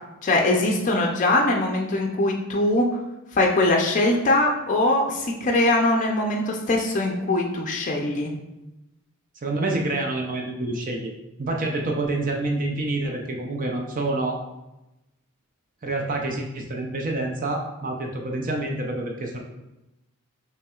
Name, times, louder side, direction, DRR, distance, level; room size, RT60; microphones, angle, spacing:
voice 1, 0.2-3.0 3.3-8.3, left 2 dB, 35° left, 0 dB, 0.4 m, -22 dB
voice 2, 9.4-11.1 11.4-14.4 15.8-19.4, right 2 dB, 40° right, 1 dB, 0.4 m, -27 dB
5.6 x 3.1 x 2.3 m, 0.95 s
head